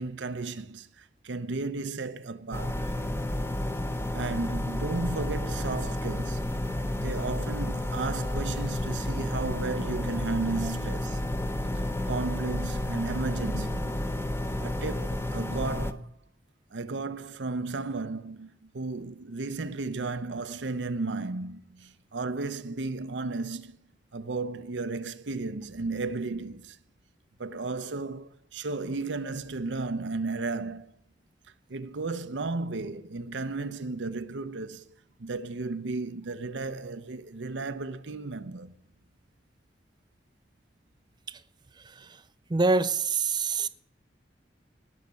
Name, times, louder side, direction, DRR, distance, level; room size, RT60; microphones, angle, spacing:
voice 1, 0.0-2.9 4.1-6.5 6.9-11.2 12.1-14.0 14.6-16.1 16.7-23.8 24.1-26.8 27.4-30.9 31.7-34.9 35.2-38.7, right 3 dB, 75° right, 0.7 m, -34 dB
sound 1, 2.5-15.9, left 1 dB, 15° left, 0.8 m, -31 dB
voice 2, 41.7-42.2 42.5-43.7, right 4 dB, 25° right, 0.5 m, -26 dB
19.0 x 6.5 x 7.0 m
head